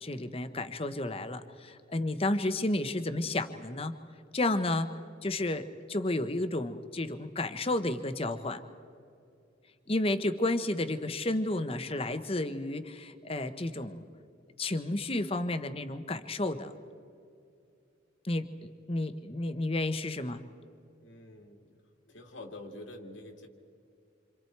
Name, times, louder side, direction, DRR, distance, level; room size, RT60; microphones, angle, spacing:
voice 1, 0.0-3.9 4.3-4.9 5.2-8.6 9.9-14.0 14.6-16.7 18.2-20.4, left 2 dB, 30° left, 10 dB, 0.9 m, -31 dB
voice 2, 21.0-23.5, left 1 dB, 85° left, 3 dB, 2.4 m, -47 dB
28.0 x 26.0 x 4.6 m, 2.4 s
head